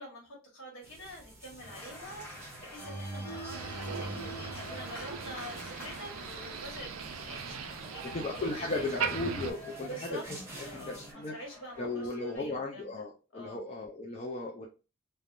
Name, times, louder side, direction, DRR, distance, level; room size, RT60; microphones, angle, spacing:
voice 1, 0.0-8.9 9.8-10.2 10.5-13.0 13.3-13.6, equal, 65° left, -1 dB, 1.3 m, -46 dB
sound 1, 0.8-11.1, right 1 dB, 10° right, 0.7 m, -51 dB
Organ, 1.6-12.4, right 1 dB, 10° left, 1.4 m, -45 dB
Motor vehicle (road), 3.5-9.5, right 6 dB, 70° right, 0.4 m, -39 dB
voice 2, 8.1-11.3 11.8-14.7, left 2 dB, 30° left, -1 dB, 0.4 m, -36 dB
3.3 x 2.1 x 2.4 m, 0.31 s
head